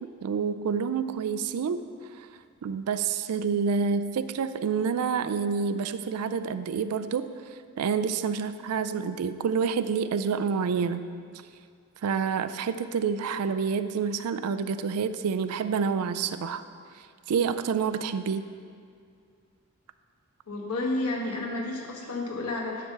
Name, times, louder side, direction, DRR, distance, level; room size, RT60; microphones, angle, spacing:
voice 1, 0.0-1.8 2.2-2.3 2.6-7.3 7.8-11.1 12.0-16.6 17.3-18.5, right 6 dB, 85° right, 11 dB, 0.4 m, -28 dB
voice 2, 20.5-22.9, left 2 dB, 90° left, -1 dB, 1.3 m, -31 dB
10.0 x 3.4 x 6.5 m, 2.2 s
head